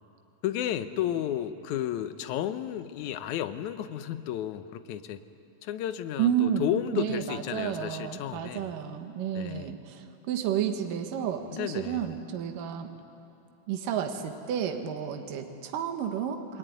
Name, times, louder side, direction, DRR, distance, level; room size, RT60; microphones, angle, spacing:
voice 1, 0.4-5.2 5.6-8.7 9.3-9.7 11.5-12.2, left 11 dB, 70° left, 10 dB, 2.1 m, -32 dB
voice 2, 6.2-6.7 6.9-12.9 13.7-16.6, right 9 dB, 75° right, 5 dB, 2.9 m, -31 dB
28.0 x 21.5 x 9.4 m, 2.8 s
omnidirectional pair, 3.9 m